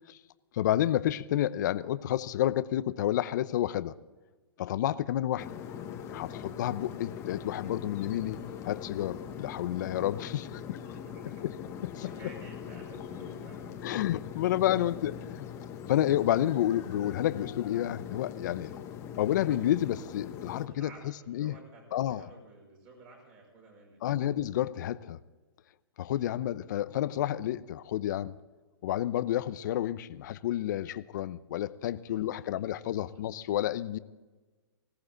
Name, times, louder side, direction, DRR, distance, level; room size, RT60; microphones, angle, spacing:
voice 1, 0.5-3.9 4.6-5.5 6.1-8.4 8.6-10.8 11.4-11.5 11.8-12.1 13.8-15.5 15.9-18.7 19.2-20.9 21.3-21.5 21.9-22.3 24.0-25.2 26.0-28.3 28.8-34.0, left 12 dB, 50° left, 15 dB, 0.7 m, -30 dB
sound 1, 5.4-20.7, left 8 dB, 20° left, 1.4 m, -41 dB
voice 2, 10.8-11.5 11.8-14.1 14.8-14.9 20.7-24.2 32.1-32.7 33.0-33.2, right 3 dB, 30° right, -1 dB, 6.4 m, -53 dB
20.0 x 17.0 x 3.9 m, 1.2 s
hypercardioid pair, 150°, 13 cm